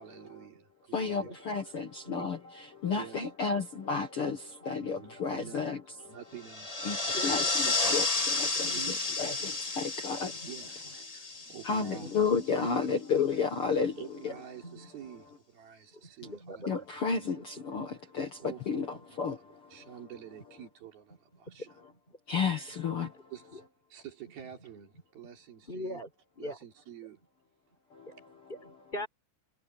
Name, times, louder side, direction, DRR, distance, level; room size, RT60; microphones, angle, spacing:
voice 1, 0.0-1.3 2.9-3.6 4.9-5.7 6.1-7.2 7.4-8.0 8.8-9.0 10.5-12.1 12.6-12.8 14.0-16.9 18.4-19.0 19.3-19.4 19.7-21.7 23.3-23.6 23.9-26.0 26.4-27.2, right 9 dB, 85° right, 5.4 m, -48 dB
voice 2, 0.9-6.2 6.8-10.4 11.6-14.0 14.2-14.3 16.7-19.4 19.8-19.9 22.3-23.3 27.9-28.5, left 5 dB, 50° left, 1.9 m, -32 dB
sound 1, 6.4-12.3, left 3 dB, 80° left, 0.3 m, -32 dB
voice 3, 7.1-7.8 8.5-8.9 9.3-9.5 10.2-10.5 11.4-12.1 14.6-14.9 15.9-16.8 18.6-18.7 21.5-22.2 23.5-23.6 25.6-26.1 26.4-26.6 27.7-29.1, left 1 dB, 15° left, 4.8 m, -43 dB
omnidirectional pair, 4.2 m